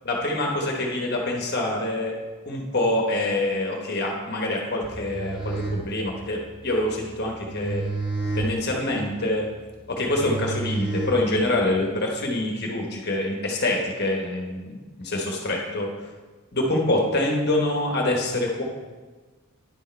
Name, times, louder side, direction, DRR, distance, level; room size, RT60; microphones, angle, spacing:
voice 1, 0.0-2.1 2.4-7.8 8.3-9.5 9.9-15.9 16.5-18.6, left 1 dB, 45° left, 0 dB, 1.2 m, -25 dB
sound 1, 4.7-11.7, right 3 dB, 20° right, 1.7 m, -32 dB
9.9 x 6.3 x 4.5 m, 1.3 s
head